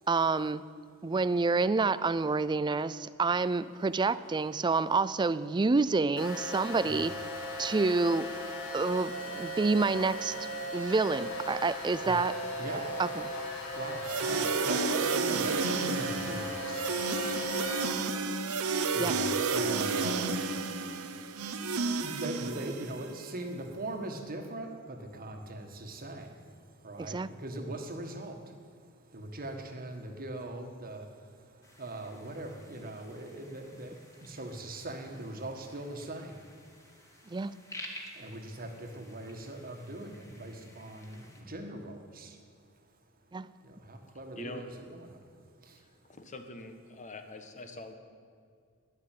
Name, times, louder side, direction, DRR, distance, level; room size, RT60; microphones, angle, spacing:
voice 1, 0.1-0.7 1.0-7.2 7.6-8.3 8.7-12.4 13.0-13.3 19.0-19.2 27.0-27.3 37.3-37.6 43.3-43.5, right 3 dB, 20° right, 0.4 m, -28 dB
sound 1, 6.2-17.8, equal, 70° left, 2.8 m, -37 dB
voice 2, 13.8-14.4 14.7-16.9 18.9-20.3 21.8-26.3 26.8-28.3 29.1-31.0 31.8-33.9 34.3-36.3 38.2-38.7 39.0-40.1 40.4-41.1 41.5-42.3 43.9-45.1, right 1 dB, 40° right, 1.7 m, -40 dB
sound 2, 14.0-23.2, right 4 dB, 90° right, 1.0 m, -31 dB
sound 3, 31.6-41.4, left 1 dB, 15° left, 2.1 m, -52 dB
voice 3, 44.3-44.9 45.8-47.9, left 2 dB, 35° left, 1.3 m, -45 dB
12.0 x 11.0 x 9.2 m
head